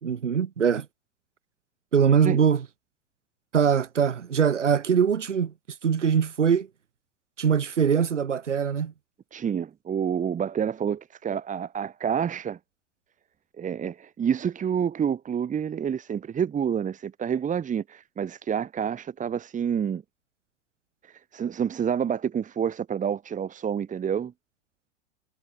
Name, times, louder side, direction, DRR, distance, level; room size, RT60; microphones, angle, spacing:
voice 1, 0.0-0.8 1.9-2.6 3.5-5.5 5.8-6.7 7.4-8.9, right 7 dB, 75° right, 3.0 m, -22 dB
voice 2, 9.3-12.6 13.6-20.0 21.1-24.3, right 8 dB, 20° right, 2.9 m, -28 dB
figure-of-eight pair, 90°, 37 cm